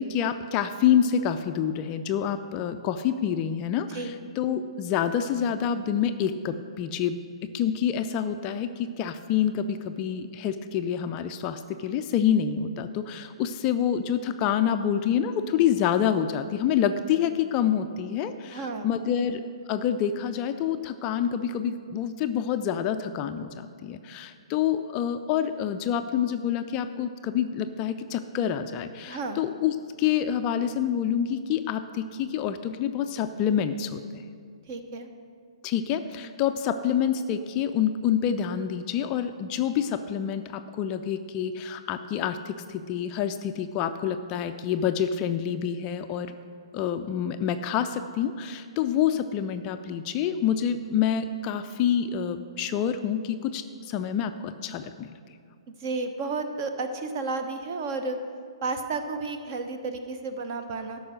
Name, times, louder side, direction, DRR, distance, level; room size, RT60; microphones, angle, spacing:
voice 1, 0.0-19.4 19.7-34.2 35.6-46.3 46.7-55.1, left 9 dB, 25° left, 8 dB, 0.4 m, -27 dB
voice 2, 18.5-18.9 29.1-29.4 34.7-35.1 55.7-58.2 58.6-61.0, right 3 dB, 35° right, 7 dB, 0.9 m, -32 dB
13.0 x 5.4 x 6.3 m, 2.1 s
figure-of-eight pair, 125°, 3 cm